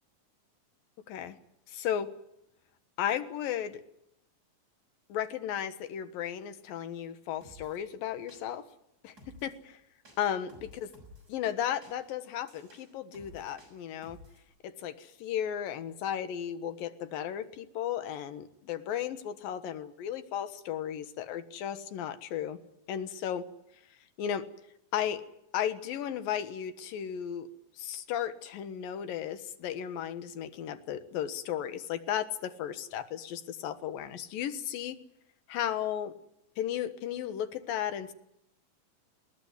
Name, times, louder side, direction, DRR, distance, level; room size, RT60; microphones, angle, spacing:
voice 1, 1.7-2.1 3.0-3.8 5.1-8.6 9.0-9.8 10.2-10.9 11.3-14.2 14.6-22.6 22.9-23.5 24.2-24.5 24.9-25.2 25.5-27.5 27.8-35.0 35.5-36.1 36.6-38.1, left 10 dB, 75° left, 10 dB, 3.0 m, -35 dB
sound 1, 7.4-7.8 8.3-8.7 9.2-9.6 10.0-11.3 11.8-14.5, left 1 dB, 25° right, 7.0 m, -55 dB
21.0 x 18.5 x 9.6 m, 0.79 s
omnidirectional pair, 4.1 m